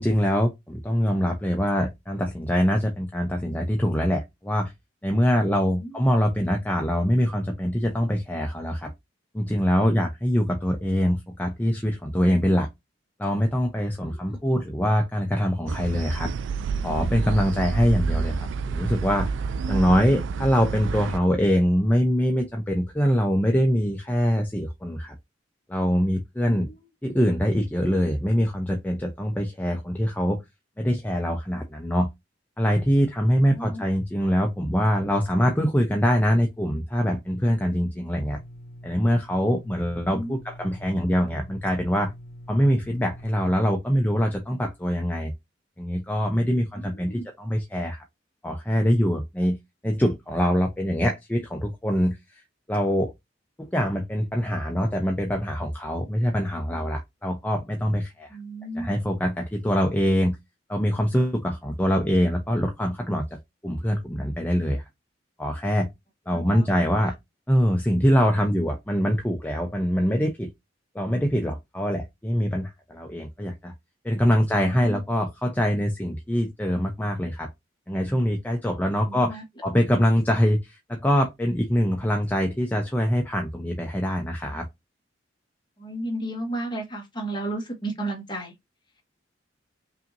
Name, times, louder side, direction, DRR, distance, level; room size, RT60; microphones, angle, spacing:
voice 1, 0.0-4.7 5.0-8.9 9.3-12.7 13.2-16.3 16.8-19.3 19.7-25.1 25.7-26.7 27.0-30.4 30.8-32.1 32.6-38.4 38.8-42.1 42.5-45.3 45.8-48.0 48.4-49.6 49.8-52.4 52.7-53.1 53.6-58.4 58.8-60.4 60.7-63.4 63.6-64.9 65.4-65.9 66.3-67.1 67.5-70.5 70.9-73.7 74.0-77.5 77.9-79.4 79.6-84.7, equal, 10° left, 0.6 m, -24 dB
voice 2, 5.7-6.1 14.0-14.4 26.4-26.8 33.4-33.8 40.0-40.4 46.8-47.2 58.3-58.9 66.3-66.7 67.0-67.1 74.4-75.0 79.1-79.4 85.8-88.5, right 1 dB, 25° left, 1.3 m, -34 dB
sound 1, 15.7-21.2, right 5 dB, 70° right, 0.3 m, -29 dB
sound 2, 38.1-43.6, equal, 55° left, 1.2 m, -44 dB
5.5 x 2.7 x 2.6 m
head